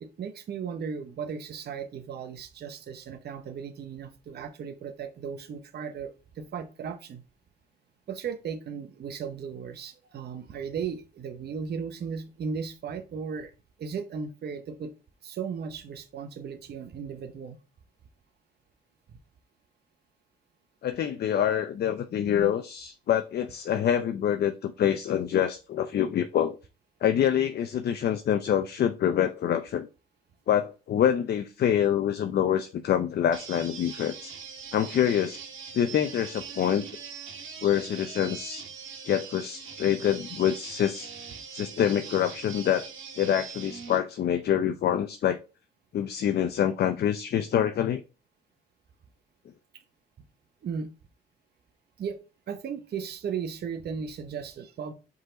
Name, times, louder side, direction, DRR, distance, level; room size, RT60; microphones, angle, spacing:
voice 1, 0.0-7.2 8.1-13.5 13.8-14.9 15.2-17.6 50.6-50.9 52.0-52.2 52.5-54.9, right 6 dB, 55° right, 0.8 m, -36 dB
voice 2, 20.8-26.6 27.0-29.9 30.5-34.3 34.7-35.4 35.7-36.8 37.6-38.7 39.1-41.1 41.5-42.9 43.2-45.4 45.9-48.0, left 9 dB, 55° left, 0.5 m, -26 dB
sound 1, 33.3-44.0, right 6 dB, 75° right, 1.6 m, -42 dB
5.3 x 4.0 x 5.0 m
cardioid pair, 90°, 20 cm